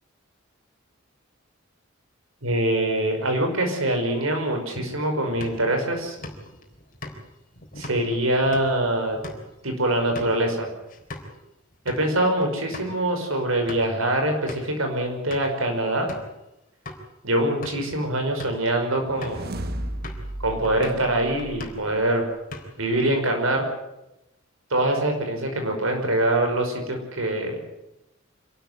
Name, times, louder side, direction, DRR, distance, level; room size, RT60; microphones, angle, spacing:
voice 1, 2.4-6.2 7.8-9.2 9.6-10.7 11.9-16.1 17.2-19.5 20.4-22.2 22.8-23.6 24.7-27.6, right 1 dB, 80° right, 4 dB, 5.7 m, -24 dB
sound 1, 5.3-11.4 11.7-12.0 12.4-12.5 12.7-12.9 13.4-14.0 14.5-14.8 15.3-15.6 16.1-16.3 16.8-17.0 17.5-17.9 18.3-18.6 19.2-19.5 20.0-20.3 20.6-21.1 21.4-21.9 22.3-22.9, left 2 dB, 40° left, 3.8 m, -40 dB
sound 2, 18.9-22.2, right 1 dB, 50° right, 1.4 m, -35 dB
26.0 x 13.0 x 9.6 m, 0.91 s
head